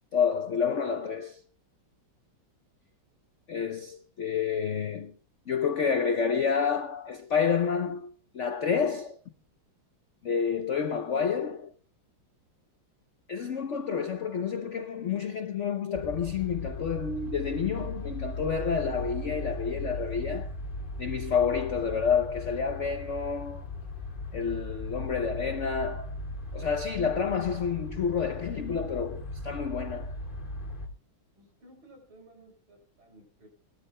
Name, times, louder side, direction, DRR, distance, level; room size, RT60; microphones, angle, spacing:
voice 1, 0.1-1.4 3.5-5.1 5.5-9.2 10.2-11.7 13.3-20.5 21.0-23.7 24.3-26.2 26.5-30.1, left 6 dB, 80° left, 0.6 m, -29 dB
sound 1, 15.9-30.9, left 2 dB, 25° left, 1.9 m, -38 dB
voice 2, 31.4-33.5, right 1 dB, 80° right, 7.4 m, -55 dB
21.0 x 13.0 x 2.2 m
omnidirectional pair, 2.3 m